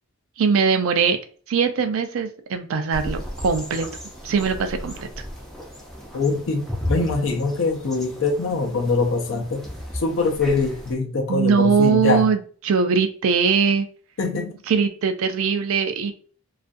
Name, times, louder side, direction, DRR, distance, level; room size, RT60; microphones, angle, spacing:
voice 1, 0.4-1.2 1.5-3.9 4.2-5.1 11.3-13.9 14.7-16.1, right 5 dB, 65° right, 8 dB, 0.4 m, -21 dB
sound 1, 2.9-10.9, equal, ahead, 0.4 m, -34 dB
voice 2, 6.1-9.7 9.9-12.3 14.2-14.5, left 3 dB, 60° left, 3 dB, 0.5 m, -23 dB
2.4 x 2.3 x 2.4 m, 0.42 s
head